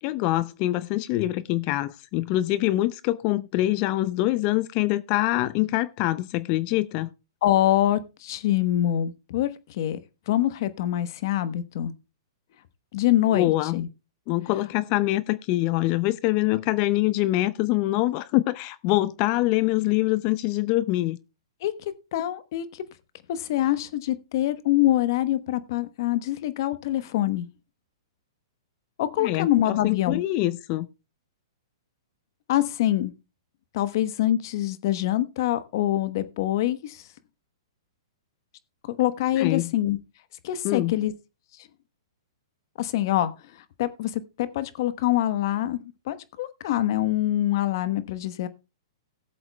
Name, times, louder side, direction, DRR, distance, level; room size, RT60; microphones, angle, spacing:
voice 1, 0.0-7.1 13.3-13.8 14.3-21.2 29.2-30.9 39.4-39.7 40.6-40.9, left 17 dB, 40° left, 0.4 m, -24 dB
voice 2, 7.4-10.0 10.3-11.9 12.9-13.9 21.6-22.8 23.3-27.5 29.0-30.2 32.5-33.1 33.7-37.0 39.0-40.0 40.4-41.1 42.8-43.3 43.8-48.5, left 13 dB, 55° left, 1.0 m, -25 dB
18.0 x 7.8 x 2.2 m
hypercardioid pair, 130°, 2 cm